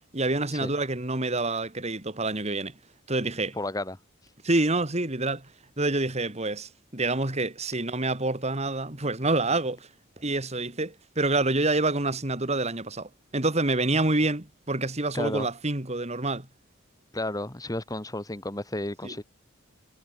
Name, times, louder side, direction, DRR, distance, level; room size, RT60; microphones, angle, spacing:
voice 1, 0.1-2.7 3.1-3.6 4.4-5.5 5.8-9.9 10.2-16.5 19.0-19.1, right 2 dB, 30° right, 2.3 m, -27 dB
voice 2, 3.5-4.0 15.1-15.5 17.1-19.2, left 1 dB, 15° left, 1.7 m, -32 dB
head